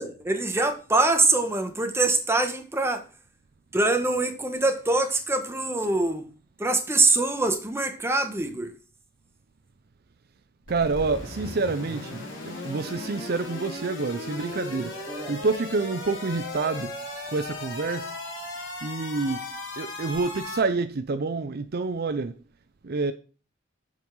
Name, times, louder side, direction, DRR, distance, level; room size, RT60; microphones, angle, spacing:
voice 1, 0.0-3.0 3.7-6.3 6.6-8.7 15.1-15.3, right 2 dB, 15° right, 1.3 m, -24 dB
sound 1, 10.7-20.6, left 2 dB, 80° left, 4.0 m, -37 dB
voice 2, 10.7-16.9 17.3-18.1 18.8-19.5 19.8-22.4 22.8-23.1, right 4 dB, 55° right, 0.6 m, -28 dB
7.4 x 5.4 x 6.1 m
head